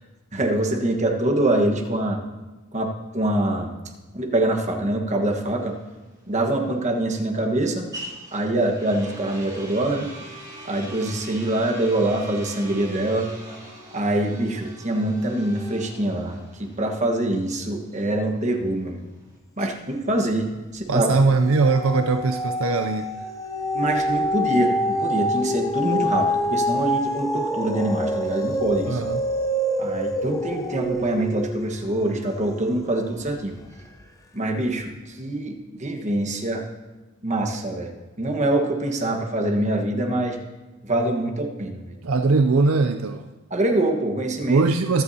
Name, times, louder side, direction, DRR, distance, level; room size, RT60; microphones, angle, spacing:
voice 1, 0.3-2.2 2.7-2.9 3.1-3.7 4.1-5.7 6.3-7.8 8.3-10.1 10.6-13.3 13.9-16.4 16.8-19.0 19.6-21.1 23.7-29.0 29.8-33.6 34.3-36.6 37.2-37.9 38.2-40.4 40.8-42.0 43.5-44.6, right 1 dB, 35° right, 1 dB, 1.4 m, -24 dB
sound 1, 5.5-19.4, right 1 dB, 20° right, 3.4 m, -42 dB
sound 2, 20.0-20.5 20.9-33.4 33.9-34.0, equal, 15° left, 0.7 m, -27 dB
voice 2, 20.9-23.1 28.8-29.2 42.0-43.2 44.5-45.0, right 3 dB, 70° right, 7 dB, 0.5 m, -20 dB
23.0 x 8.0 x 2.8 m, 1.2 s
head